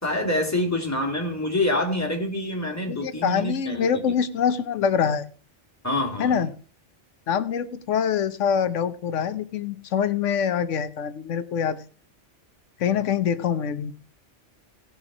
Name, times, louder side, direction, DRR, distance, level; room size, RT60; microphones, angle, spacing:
voice 1, 0.0-4.0 5.8-6.4, left 1 dB, 15° left, 0 dB, 2.5 m, -26 dB
voice 2, 2.9-5.3 6.2-6.5 7.3-11.8 12.8-13.9, left 7 dB, 90° left, 12 dB, 1.2 m, -25 dB
17.0 x 5.8 x 4.9 m, 0.39 s
omnidirectional pair, 1.2 m